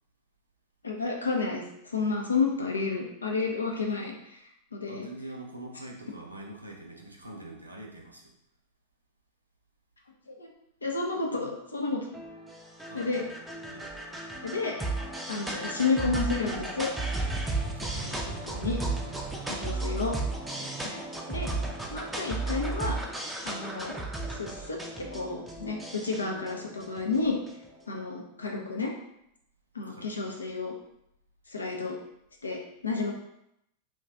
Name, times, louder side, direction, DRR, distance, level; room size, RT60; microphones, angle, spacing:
voice 1, 0.8-5.1 10.3-10.5 10.8-12.2 12.9-13.3 14.4-14.8 15.3-16.9 17.9-18.2 18.4-18.8 19.5-20.2 20.8-21.0 21.3-21.5 21.9-23.0 23.4-23.9 24.3-27.4 27.9-28.9 29.7-30.8 31.5-32.0 32.4-33.1, left 4 dB, 75° left, 1 dB, 0.5 m, -31 dB
voice 2, 4.9-8.3 12.9-13.3 13.7-13.9 17.7-18.2 19.0-19.3 20.6-20.8 29.9-30.3, right 1 dB, 85° right, 0 dB, 0.5 m, -45 dB
sound 1, 12.1-27.7, right 2 dB, 5° right, 0.5 m, -34 dB
2.6 x 2.3 x 3.4 m, 0.79 s
figure-of-eight pair, 90°, 0 cm